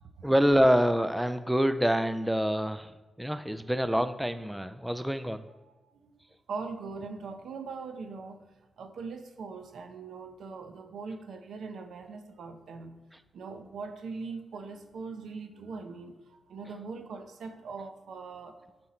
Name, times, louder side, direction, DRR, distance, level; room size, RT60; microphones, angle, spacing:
voice 1, 0.2-2.9 3.2-5.4, equal, 5° right, 11 dB, 0.3 m, -26 dB
voice 2, 5.5-6.2 6.5-13.0 13.3-18.8, right 4 dB, 85° right, 6 dB, 0.8 m, -41 dB
10.0 x 4.4 x 4.3 m, 1.2 s
wide cardioid pair, 120°, 0 cm